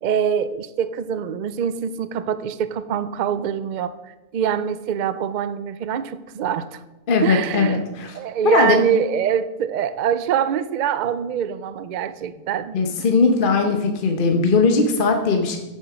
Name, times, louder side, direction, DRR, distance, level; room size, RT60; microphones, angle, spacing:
voice 1, 0.0-4.0 4.3-6.8 7.2-7.8 8.1-12.8, right 8 dB, 80° right, 13 dB, 0.4 m, -24 dB
voice 2, 7.1-8.2 8.4-8.8 12.7-15.6, left 4 dB, 40° left, 4 dB, 1.1 m, -19 dB
8.8 x 7.8 x 6.0 m, 1.1 s
omnidirectional pair, 1.4 m